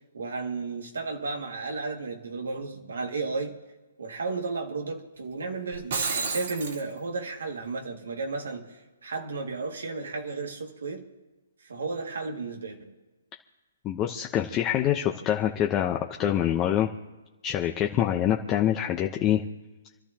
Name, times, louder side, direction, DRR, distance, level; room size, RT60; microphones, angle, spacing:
voice 1, 0.1-3.6 4.0-11.1 11.7-12.9, right 3 dB, 85° right, 1 dB, 2.2 m, -33 dB
Shatter, 5.7-6.8, right 4 dB, 60° right, 3.4 m, -30 dB
voice 2, 13.8-16.9 17.4-19.4, left 11 dB, 20° left, 1 dB, 0.9 m, -25 dB
29.0 x 12.0 x 3.0 m, 1.2 s
hypercardioid pair, 155°, 0 cm